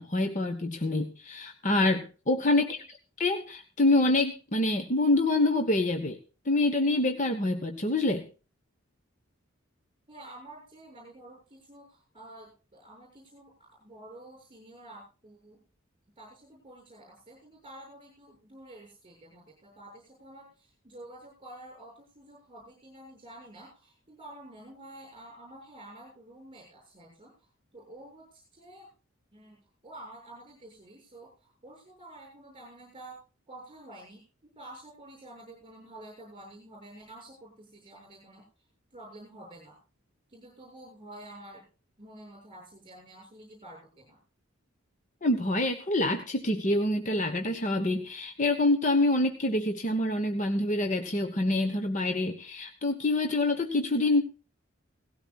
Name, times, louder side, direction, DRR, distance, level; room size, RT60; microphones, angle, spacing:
voice 1, 0.0-2.8 3.2-6.2 6.4-8.2 45.2-54.2, left 2 dB, 35° left, 6 dB, 1.1 m, -26 dB
voice 2, 10.1-15.6 16.2-28.9 29.3-29.6 29.8-33.2 33.5-39.8 40.3-41.6 42.0-44.2, right 1 dB, 25° right, 0 dB, 7.1 m, -49 dB
18.5 x 16.0 x 2.4 m, 0.34 s
head